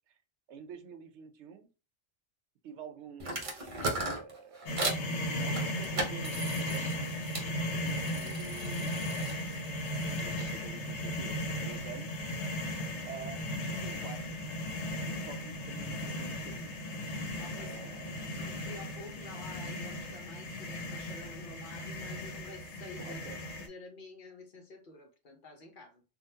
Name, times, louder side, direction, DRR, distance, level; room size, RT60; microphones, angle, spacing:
voice 1, 0.5-1.7 2.6-7.1 7.8-9.5 9.8-12.2 13.1-14.4 14.9-16.8 17.6-18.6 23.0-23.4, right 7 dB, 80° right, 0.9 m, -49 dB
sound 1, 3.2-5.0 5.5-7.5 7.9-10.5, right 2 dB, 35° right, 0.7 m, -37 dB
sound 2, 4.7-23.7, left 1 dB, 75° left, 1.0 m, -36 dB
voice 2, 17.4-23.2 23.6-26.0, left 2 dB, 50° left, 0.9 m, -50 dB
3.8 x 2.3 x 2.7 m
omnidirectional pair, 1.2 m